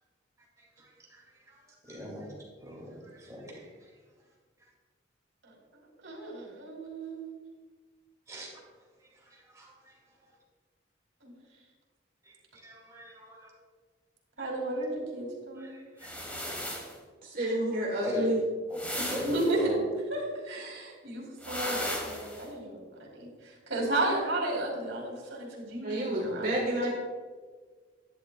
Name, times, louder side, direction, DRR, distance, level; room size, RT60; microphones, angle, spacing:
voice 1, 0.6-2.3 2.6-3.9 4.6-4.7 8.3-8.5 9.0-10.3 12.2-13.5 15.6-16.2 18.0-18.3 18.7-18.8 19.1-19.3 19.5-19.8, equal, 15° right, -3 dB, 2.4 m, -43 dB
voice 2, 5.4-7.3 11.2-11.4 14.4-15.7 19.0-19.8 20.1-26.9, right 1 dB, 90° right, -1 dB, 2.8 m, -34 dB
sound 1, 16.0-17.0 18.7-19.5 21.4-22.5, equal, 10° left, 1.3 m, -36 dB
voice 3, 17.2-18.4 25.8-26.9, right 1 dB, 50° right, -3 dB, 1.4 m, -29 dB
11.5 x 10.5 x 2.4 m, 1.5 s
head